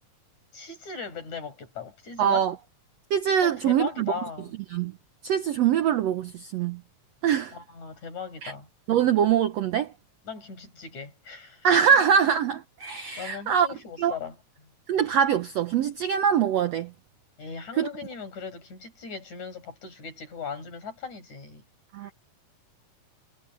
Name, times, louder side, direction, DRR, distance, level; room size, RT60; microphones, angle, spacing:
voice 1, 0.5-2.5 3.4-4.5 7.5-8.7 10.3-11.7 13.2-14.7 17.4-21.6, left 6 dB, 55° left, 7.9 m, -38 dB
voice 2, 2.2-2.6 3.1-4.1 4.7-4.9 5.2-6.8 7.2-7.6 8.4-8.5 8.9-9.9 11.6-13.7 14.0-14.2 14.9-16.9 17.8-17.9 21.9-22.1, right 8 dB, 70° right, 1.6 m, -23 dB
omnidirectional pair, 3.9 m